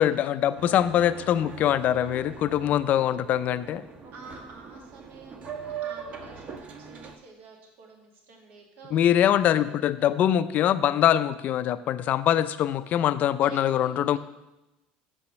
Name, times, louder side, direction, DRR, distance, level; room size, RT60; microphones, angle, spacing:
voice 1, 0.0-3.8 8.9-14.2, left 11 dB, 50° left, 14 dB, 0.4 m, -23 dB
Boat Water vehicle, 0.6-7.2, right 6 dB, 40° right, 1.0 m, -41 dB
voice 2, 4.1-10.1 13.4-14.2, right 4 dB, 60° right, 1 dB, 1.8 m, -49 dB
7.0 x 5.7 x 6.5 m, 0.98 s
cardioid pair, 125°, 4 cm